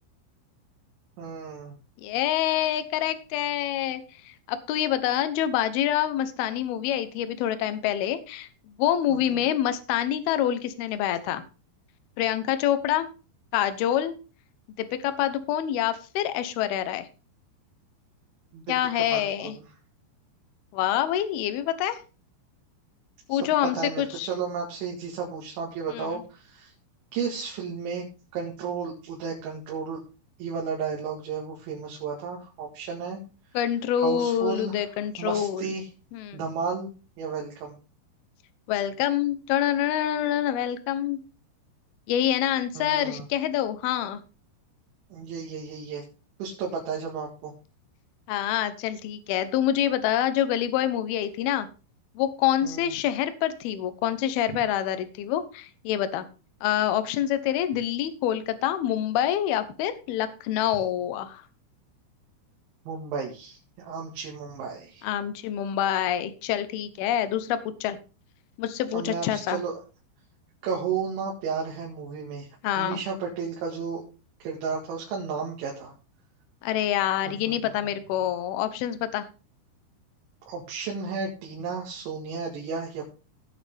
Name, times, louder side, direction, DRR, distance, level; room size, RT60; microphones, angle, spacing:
voice 1, 1.2-1.8 9.1-9.4 18.5-18.7 19.1-19.6 23.3-23.4 23.7-26.7 27.1-28.1 28.3-30.0 30.4-33.2 34.0-34.8 35.2-35.9 36.3-36.9 37.2-37.8 42.8-43.3 45.1-46.0 46.4-47.5 52.6-52.9 54.5-54.6 62.9-65.1 68.9-69.8 70.6-72.5 72.7-74.0 74.4-75.9 77.3-77.4 80.5-83.1, right 5 dB, 70° right, -2 dB, 4.2 m, -33 dB
voice 2, 2.0-11.4 12.2-13.1 13.5-14.2 14.8-17.1 18.7-19.6 20.7-22.0 23.3-24.3 25.9-26.2 33.5-35.7 36.1-36.5 38.7-41.2 42.1-44.2 48.3-51.7 52.2-56.3 56.6-61.4 65.0-68.0 68.6-69.6 72.6-73.0 76.6-79.3, left 11 dB, 75° left, 11 dB, 2.3 m, -26 dB
17.5 x 6.5 x 3.5 m, 0.34 s
omnidirectional pair, 5.7 m